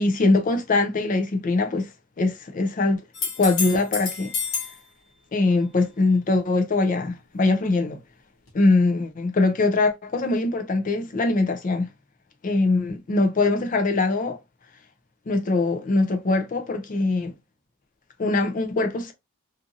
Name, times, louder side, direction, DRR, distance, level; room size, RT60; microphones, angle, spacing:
voice 1, 0.0-1.9 2.2-3.0 3.4-4.3 5.3-8.0 8.5-11.9 12.4-14.4 15.3-17.3 18.2-19.1, left 3 dB, 35° left, 0.4 m, -22 dB
sound 1, 3.1-4.8 8.5-8.6, left 5 dB, 55° left, 1.0 m, -29 dB
2.6 x 2.5 x 2.5 m
head